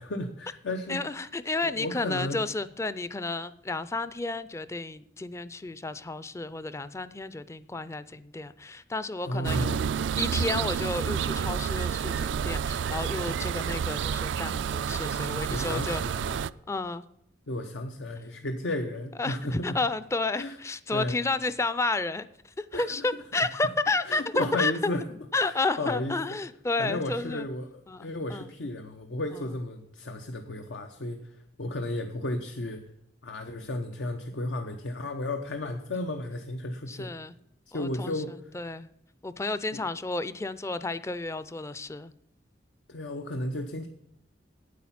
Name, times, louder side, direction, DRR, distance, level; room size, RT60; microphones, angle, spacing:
voice 1, 0.0-1.2 1.6-2.4 9.2-9.9 15.5-16.4 17.5-19.8 20.3-20.6 20.9-21.2 22.7-23.2 24.0-25.0 25.4-26.1 26.8-32.8 33.2-37.1 37.7-38.6 39.7-39.8 42.9-43.9, left 1 dB, 90° left, 5 dB, 0.8 m, -34 dB
voice 2, 0.9-9.6 10.2-16.0 16.7-17.0 19.2-19.4 19.6-22.3 22.6-24.9 25.3-27.4 27.9-28.5 36.9-37.3 37.7-38.1 38.5-38.9 39.2-42.1, left 3 dB, 15° left, 15 dB, 0.4 m, -31 dB
sound 1, 9.4-16.5, right 7 dB, 80° right, 0.3 m, -29 dB
9.0 x 8.5 x 5.8 m, 0.81 s
head